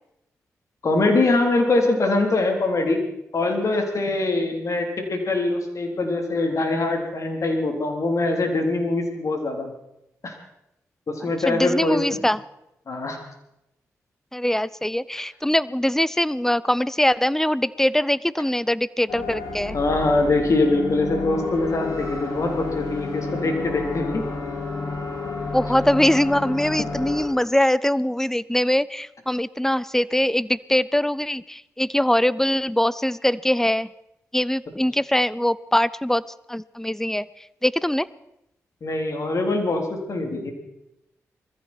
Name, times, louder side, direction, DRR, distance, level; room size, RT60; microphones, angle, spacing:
voice 1, 0.8-3.0 3.3-9.7 10.2-10.3 11.1-12.2 12.9-13.2 19.7-24.2 38.8-40.5, left 2 dB, 55° left, 3 dB, 3.9 m, -23 dB
voice 2, 11.5-12.4 14.3-19.8 25.5-33.9 34.3-36.2 36.5-37.3 37.6-38.1, left 1 dB, 5° left, 20 dB, 0.6 m, -22 dB
sound 1, 19.1-27.3, left 3 dB, 80° left, 4.9 m, -31 dB
21.0 x 15.0 x 4.6 m, 0.87 s
supercardioid pair, 50°, 6 cm